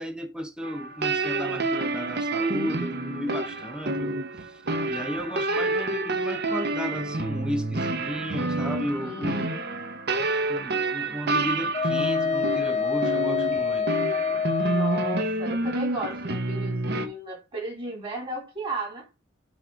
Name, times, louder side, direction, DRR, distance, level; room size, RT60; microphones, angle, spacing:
voice 1, 0.0-9.5 10.5-13.9, equal, 5° right, 1.0 m, -34 dB
sound 1, 0.6-17.1, right 2 dB, 55° right, 1.0 m, -28 dB
voice 2, 9.0-10.4 14.6-19.1, right 2 dB, 25° right, 3.7 m, -35 dB
Wind instrument woodwind instrument, 11.7-15.3, left 6 dB, 35° left, 0.8 m, -26 dB
9.6 x 3.6 x 5.0 m
head